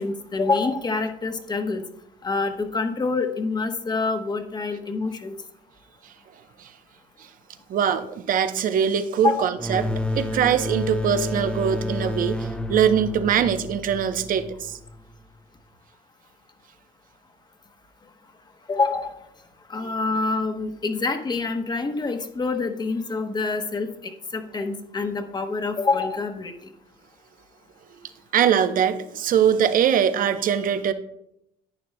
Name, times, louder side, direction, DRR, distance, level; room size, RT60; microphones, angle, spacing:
voice 1, 0.0-1.8 2.2-5.3 9.2-9.5 18.7-19.1 19.7-23.9 24.3-26.5, left 3 dB, 25° left, 7 dB, 1.0 m, -26 dB
voice 2, 7.7-9.8 10.1-14.8 19.8-19.9 28.3-30.9, right 8 dB, 55° right, 10 dB, 0.7 m, -22 dB
sound 1, 9.6-15.0, left 1 dB, 5° left, 0.5 m, -30 dB
11.0 x 9.0 x 2.2 m, 0.78 s
cardioid pair, 110°, 17 cm